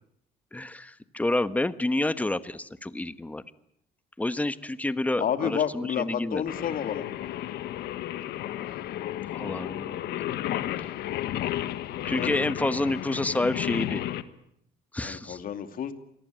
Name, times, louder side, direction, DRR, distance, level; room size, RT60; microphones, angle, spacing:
voice 1, 0.5-3.4 4.2-6.4 9.3-10.2 12.0-14.0 14.9-15.4, left 2 dB, 10° left, 13 dB, 1.2 m, -29 dB
voice 2, 5.2-7.1 12.1-12.3 15.0-15.9, left 9 dB, 55° left, 9 dB, 2.6 m, -30 dB
Singing, 6.5-14.2, left 12 dB, 75° left, 1.5 m, -32 dB
27.0 x 19.0 x 9.2 m, 0.76 s
cardioid pair, 110°, 17 cm